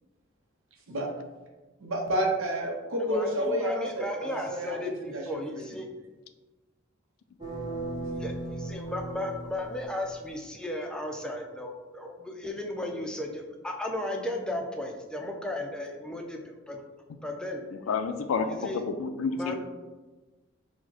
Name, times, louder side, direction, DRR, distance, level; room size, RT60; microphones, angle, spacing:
voice 1, 1.8-5.6, right 1 dB, 85° right, 0 dB, 0.7 m, -30 dB
voice 2, 3.1-5.9 8.2-16.8 17.2-17.6 18.4-18.8 19.3-19.5, left 1 dB, 5° left, 2 dB, 0.4 m, -35 dB
sound 1, 7.4-10.4, right 2 dB, 20° right, 0.7 m, -37 dB
voice 3, 17.7-19.5, left 5 dB, 90° left, 9 dB, 0.4 m, -30 dB
4.8 x 2.1 x 4.1 m, 1.2 s
head